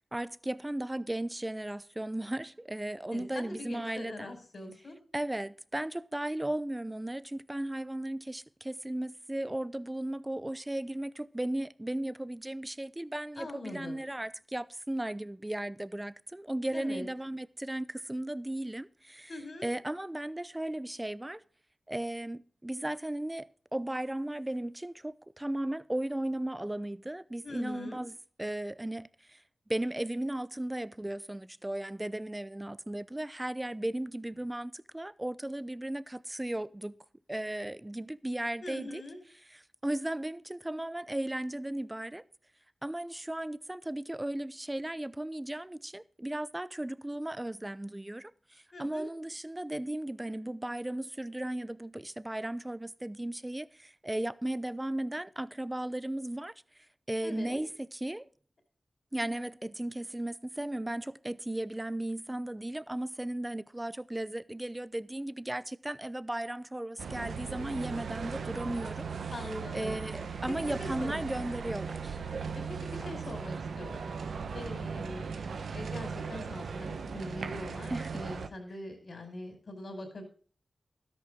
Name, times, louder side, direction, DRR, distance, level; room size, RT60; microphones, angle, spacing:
voice 1, 0.1-4.3 5.1-19.3 19.6-21.4 21.9-29.4 29.7-37.0 37.3-39.0 39.5-42.2 42.8-56.5 57.1-58.3 59.1-69.1 69.7-72.2 73.0-73.1 77.9-78.1, right 1 dB, 20° right, 0.7 m, -36 dB
voice 2, 3.1-5.0 13.4-14.0 16.7-17.1 19.3-19.7 27.4-28.0 38.6-39.2 48.7-49.1 57.2-57.6 69.3-69.9 70.5-71.2 72.5-74.1 74.5-75.3 75.7-80.2, left 1 dB, 65° left, 4.8 m, -42 dB
sound 1, 67.0-78.5, right 5 dB, 90° right, 1.1 m, -38 dB
13.0 x 10.5 x 3.8 m
cardioid pair, 45°, 0 cm